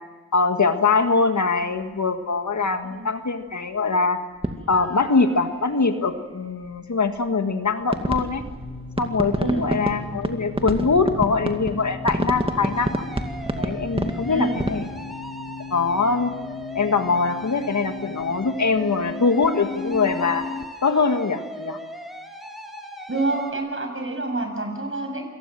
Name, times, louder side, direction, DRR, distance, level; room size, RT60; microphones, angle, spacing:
voice 1, 0.3-4.2 4.7-8.4 9.0-13.0 13.6-14.9 15.7-16.3 16.8-20.4 20.8-21.8, left 4 dB, 70° left, 7 dB, 1.8 m, -22 dB
sound 1, 1.6-1.8 2.8-2.9 3.8-3.9 4.4-6.1 6.4-14.9, right 1 dB, 20° right, 2.3 m, -29 dB
sound 2, 4.7-6.2 12.3-23.5, equal, ahead, 3.7 m, -39 dB
sound 3, 7.8-20.6, left 4 dB, 35° left, 1.5 m, -37 dB
voice 2, 9.4-9.7 14.3-14.6 23.1-25.2, right 2 dB, 45° right, 3 dB, 7.1 m, -27 dB
27.5 x 19.0 x 7.6 m, 1.2 s
cardioid pair, 45°, 30 cm